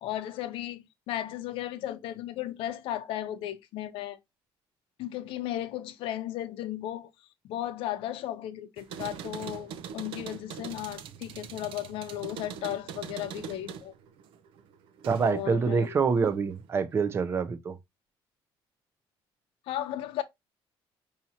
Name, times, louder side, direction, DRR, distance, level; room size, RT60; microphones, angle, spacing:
voice 1, 0.0-4.2 5.0-7.1 7.4-13.9 15.2-15.9 19.7-20.2, left 13 dB, 80° left, 0.7 m, -35 dB
sound 1, 8.8-15.5 15.8-16.7, right 7 dB, 80° right, 0.6 m, -42 dB
voice 2, 15.1-17.8, right 5 dB, 30° right, 0.5 m, -26 dB
6.0 x 2.8 x 2.8 m
cardioid pair, 175°, 9 cm